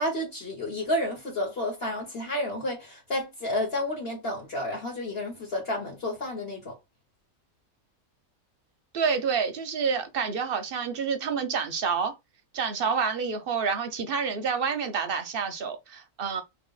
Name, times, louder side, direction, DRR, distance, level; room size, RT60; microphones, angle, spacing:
voice 1, 0.0-6.7, left 1 dB, 45° left, 1.4 m, -31 dB
voice 2, 8.9-12.1 12.5-16.4, right 6 dB, 50° right, 0.7 m, -28 dB
3.1 x 2.9 x 3.9 m
omnidirectional pair, 1.5 m